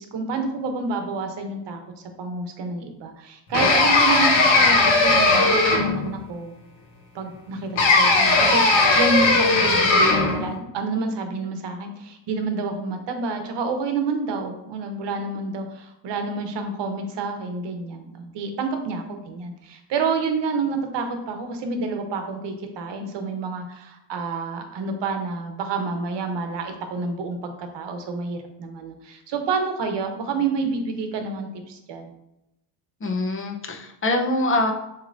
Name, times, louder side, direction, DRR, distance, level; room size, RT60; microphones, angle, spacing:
voice 1, 0.0-1.8 2.2-6.5 7.1-32.1, right 4 dB, 65° right, 5 dB, 0.9 m, -29 dB
sound 1, 3.5-6.1 7.8-10.4, left 3 dB, 80° left, 1.3 m, -17 dB
voice 2, 33.0-34.7, left 2 dB, 25° left, 2 dB, 0.7 m, -24 dB
6.4 x 3.0 x 2.6 m, 0.86 s
cardioid pair, 100°, 47 cm